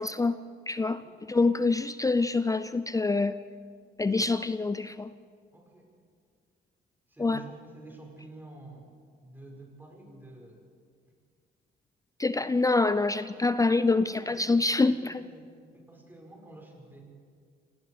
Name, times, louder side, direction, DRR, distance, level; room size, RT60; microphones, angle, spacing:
voice 1, 0.0-1.0 1.3-3.4 4.0-5.1 7.2-7.4 12.2-15.2, left 3 dB, 15° left, 14 dB, 0.5 m, -26 dB
voice 2, 0.7-1.4 5.5-5.9 7.1-8.9 9.2-10.7 14.0-17.0, right 2 dB, 10° right, -1 dB, 6.5 m, -49 dB
27.5 x 18.0 x 5.2 m, 2.1 s
cardioid pair, 90°, 20 cm